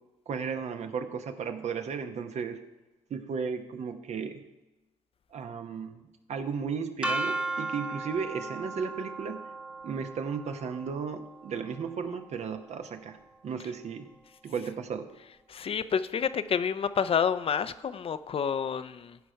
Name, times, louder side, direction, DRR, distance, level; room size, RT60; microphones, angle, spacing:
voice 1, 0.3-2.6 3.1-4.4 5.3-6.0 6.3-9.4 9.8-13.2 13.4-14.1 14.4-15.1, right 6 dB, 60° right, 7 dB, 1.1 m, -34 dB
sound 1, 7.0-12.9, right 2 dB, 5° right, 1.0 m, -37 dB
voice 2, 15.5-19.2, left 7 dB, 45° left, 13 dB, 0.6 m, -29 dB
15.0 x 5.1 x 4.6 m, 1.1 s
hypercardioid pair, 55°, 13 cm